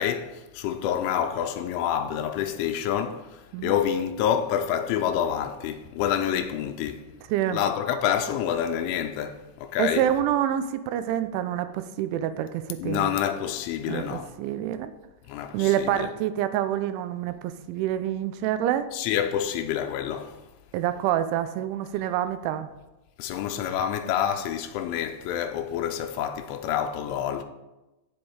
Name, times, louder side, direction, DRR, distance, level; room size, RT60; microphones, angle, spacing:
voice 1, 0.0-7.0 7.5-10.1 12.8-14.3 15.3-16.1 18.9-20.4 23.2-27.4, left 9 dB, 90° left, 3.1 m, -28 dB
voice 2, 9.8-13.2 13.9-14.9 15.5-18.9 20.7-22.7, right 11 dB, 85° right, 2.9 m, -27 dB
15.0 x 5.3 x 4.7 m
omnidirectional pair, 5.5 m